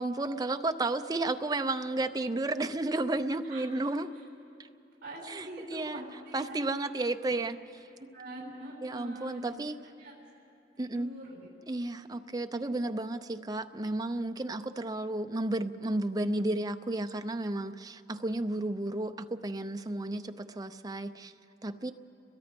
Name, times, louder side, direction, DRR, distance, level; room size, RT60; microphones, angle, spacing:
voice 1, 0.0-4.1 5.3-6.0 6.3-7.6 8.8-9.8 10.8-11.1 11.7-21.3 21.6-21.9, right 2 dB, 20° right, 8 dB, 0.6 m, -32 dB
voice 2, 5.0-6.6 7.2-7.3 8.1-9.5 10.0-10.1 10.7-11.5, right 1 dB, 55° right, -3 dB, 5.8 m, -43 dB
29.5 x 22.5 x 5.3 m, 2.8 s
head